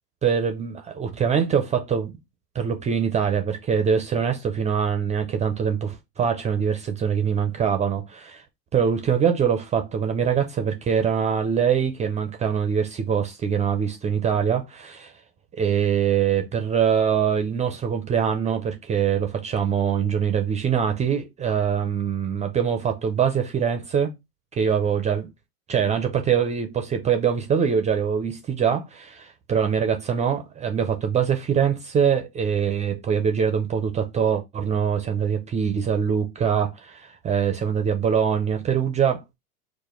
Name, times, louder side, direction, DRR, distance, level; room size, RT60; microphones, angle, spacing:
voice 1, 0.2-2.1 2.5-8.4 8.7-15.1 15.6-24.1 24.5-25.3 25.7-39.3, right 7 dB, 15° right, 0.5 m, -23 dB
5.0 x 2.2 x 4.2 m
hypercardioid pair, 105°, 48 cm